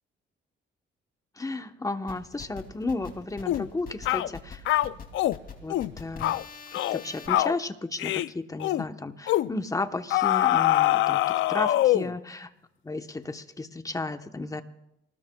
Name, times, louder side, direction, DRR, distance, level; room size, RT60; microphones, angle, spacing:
voice 1, 1.4-4.7 5.6-6.3 6.9-11.2 11.5-12.5 12.8-14.6, left 2 dB, 15° left, 8 dB, 1.0 m, -33 dB
sound 1, 2.1-7.3, left 6 dB, 45° left, 2.8 m, -44 dB
sound 2, 3.5-3.7 4.1-4.3 4.7-5.4 5.7-5.9 6.2-6.4 6.7-7.0 7.3-7.6 8.0-8.3 8.6-8.8 9.3-9.5 10.1-12.2, left 14 dB, 75° left, 0.5 m, -24 dB
29.0 x 19.5 x 2.3 m, 0.86 s
cardioid pair, 90°, 20 cm